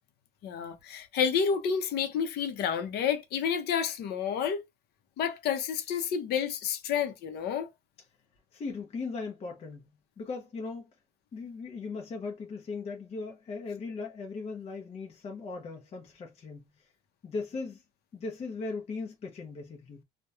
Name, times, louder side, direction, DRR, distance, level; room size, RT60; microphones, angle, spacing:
voice 1, 0.4-4.6 5.2-7.7, left 7 dB, 75° left, 0.7 m, -30 dB
voice 2, 8.5-9.9 10.2-10.9 11.3-16.9 17.2-17.8 18.1-20.0, left 4 dB, 40° left, 0.6 m, -38 dB
2.9 x 2.2 x 2.3 m
cardioid pair, 110°, 17 cm